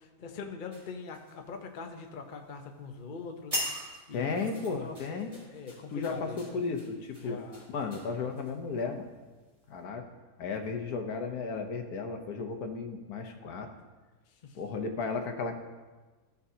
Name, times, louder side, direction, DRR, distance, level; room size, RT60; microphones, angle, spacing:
voice 1, 0.0-3.8 4.1-6.6 7.2-7.6 14.4-14.6, left 5 dB, 45° left, 3 dB, 0.7 m, -43 dB
sound 1, 0.7-1.9 2.3-2.6 3.1-3.2 3.5-8.8 9.4-9.6, equal, 25° right, 3.0 m, -41 dB
voice 2, 4.1-5.3 5.9-7.4 7.7-9.1 9.7-10.0 10.4-13.7 14.5-15.5, left 4 dB, 70° left, 4 dB, 1.3 m, -34 dB
14.5 x 6.6 x 2.8 m, 1.3 s
omnidirectional pair, 1.8 m